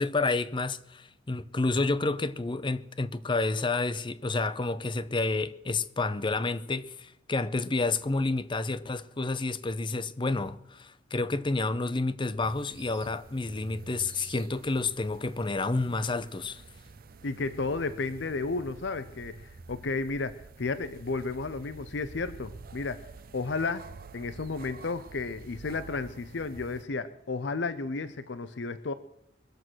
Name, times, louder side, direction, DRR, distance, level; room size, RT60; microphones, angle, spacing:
voice 1, 0.0-16.6, left 3 dB, 25° left, 0.6 m, -30 dB
sound 1, 12.4-26.8, right 4 dB, 55° right, 0.6 m, -48 dB
voice 2, 17.2-23.1 23.3-28.9, left 3 dB, 70° left, 0.7 m, -33 dB
23.0 x 7.8 x 6.2 m
head